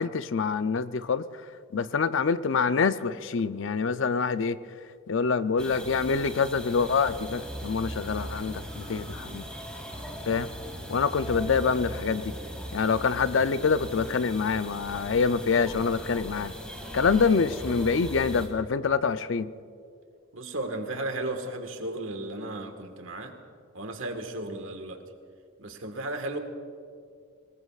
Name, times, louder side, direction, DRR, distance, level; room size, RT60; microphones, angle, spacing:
voice 1, 0.0-1.4 1.7-4.6 5.1-9.5 10.3-10.5 10.9-12.4 12.7-16.5 16.9-19.5, left 5 dB, 60° left, 13 dB, 0.5 m, -26 dB
sound 1, 5.6-18.5, equal, 5° left, 2.0 m, -39 dB
voice 2, 20.3-23.4 23.7-25.0 25.6-26.4, right 2 dB, 70° right, 5 dB, 1.6 m, -34 dB
25.0 x 19.5 x 2.4 m, 2.3 s
head